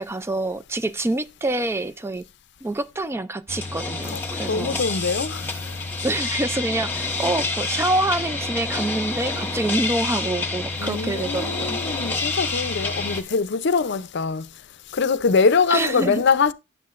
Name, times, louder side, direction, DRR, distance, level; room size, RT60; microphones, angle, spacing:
voice 1, 0.0-2.2 2.6-4.8 6.0-11.8 15.7-16.2, right 2 dB, 15° right, 0.3 m, -26 dB
sound 1, 3.5-13.2, left 3 dB, 10° left, 1.3 m, -28 dB
voice 2, 4.5-5.8 10.8-14.5 14.9-16.5, left 5 dB, 60° left, 0.5 m, -23 dB
10.0 x 7.5 x 2.5 m
head